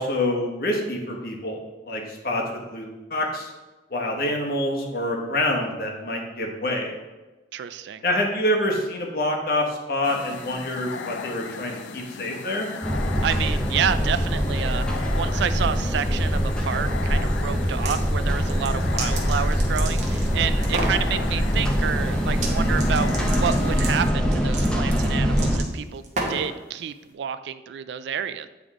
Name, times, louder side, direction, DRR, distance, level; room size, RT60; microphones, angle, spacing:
voice 1, 0.0-1.6 1.9-3.5 3.9-6.9 8.0-12.7, left 1 dB, 50° left, 1 dB, 1.0 m, -26 dB
voice 2, 7.5-8.0 13.2-28.5, right 8 dB, 70° right, 12 dB, 0.3 m, -29 dB
sound 1, 10.0-24.1, left 6 dB, 80° left, 0.4 m, -37 dB
sound 2, 12.8-25.6, equal, 5° left, 0.6 m, -23 dB
sound 3, 17.6-18.0 18.4-20.3 20.6-21.0 22.3-22.5 22.8-26.5, right 2 dB, 40° right, 0.9 m, -32 dB
8.9 x 3.4 x 3.6 m, 1.2 s
head